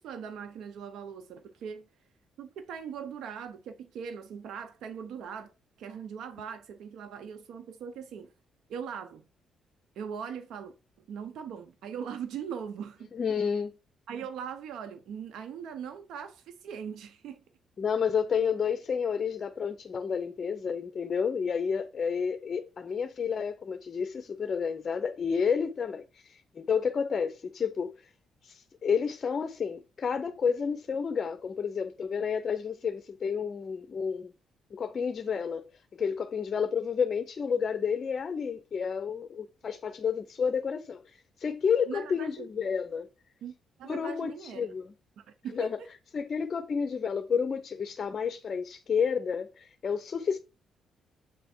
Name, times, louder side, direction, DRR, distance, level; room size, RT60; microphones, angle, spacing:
voice 1, 0.0-1.9 2.4-5.5 5.8-8.3 8.7-9.2 10.0-10.7 11.1-13.1 14.1-17.4 41.9-42.5 43.4-43.5 43.8-44.7 45.2-45.9, right 7 dB, 80° right, 0.7 m, -40 dB
voice 2, 13.1-13.7 17.8-27.9 28.4-34.3 34.7-35.6 35.9-43.1 43.8-44.9 45.5-45.8 46.1-50.4, left 6 dB, 45° left, 0.6 m, -30 dB
7.5 x 3.4 x 4.3 m
cardioid pair, 90°, 0 cm